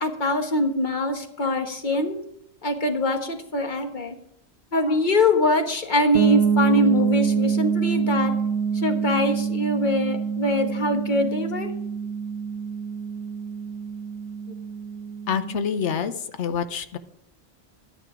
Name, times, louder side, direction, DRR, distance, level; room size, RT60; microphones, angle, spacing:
voice 1, 0.0-2.2 2.6-4.2 4.7-8.3 8.7-11.7, left 1 dB, 45° left, 5 dB, 1.5 m, -23 dB
sound 1, 6.1-15.8, right 6 dB, 70° right, 1.0 m, -26 dB
voice 2, 15.3-16.1 16.4-17.0, left 7 dB, 90° left, 10 dB, 1.1 m, -26 dB
11.5 x 9.8 x 4.9 m, 0.72 s
omnidirectional pair, 1.1 m